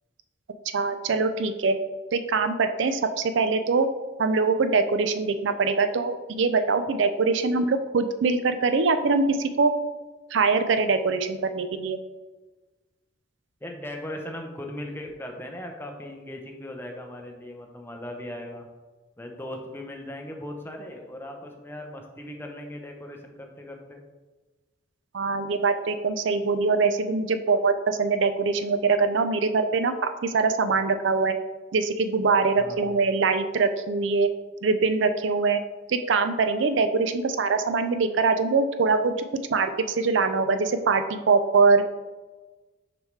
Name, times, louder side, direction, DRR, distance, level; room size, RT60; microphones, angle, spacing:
voice 1, 0.7-1.7 2.1-3.9 4.2-9.7 10.3-12.0 25.1-31.3 31.7-34.3 34.6-35.6 35.9-39.1 39.5-41.8, right 4 dB, 70° right, 9 dB, 0.4 m, -23 dB
voice 2, 13.6-18.7 19.2-24.0 32.6-32.8, left 1 dB, 10° left, 2 dB, 0.6 m, -38 dB
6.3 x 5.1 x 3.2 m, 1.2 s
head